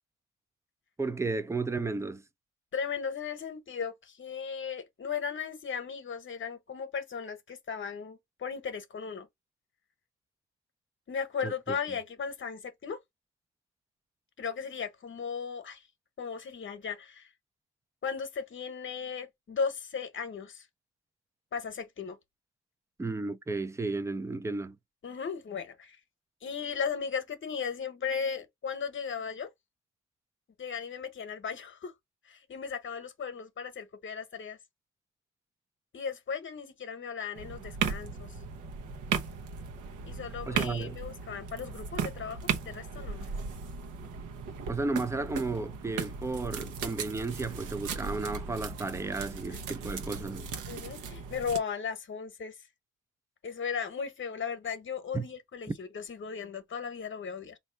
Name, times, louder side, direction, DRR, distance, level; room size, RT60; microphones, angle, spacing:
voice 1, 1.0-2.2 11.4-11.5 23.0-24.8 40.5-41.0 44.7-50.5 55.1-55.2, right 3 dB, 10° right, 0.4 m, -33 dB
voice 2, 2.7-9.3 11.1-13.0 14.4-15.9 16.2-17.3 18.0-20.7 21.5-22.2 25.0-26.0 26.4-29.5 30.6-31.9 32.2-34.6 35.9-38.3 40.1-43.3 49.5-49.6 50.2-52.6 53.4-57.6, left 6 dB, 40° left, 1.0 m, -36 dB
sound 1, 37.4-51.6, right 6 dB, 85° right, 1.0 m, -37 dB
4.1 x 2.8 x 3.3 m
cardioid pair, 90°, 30 cm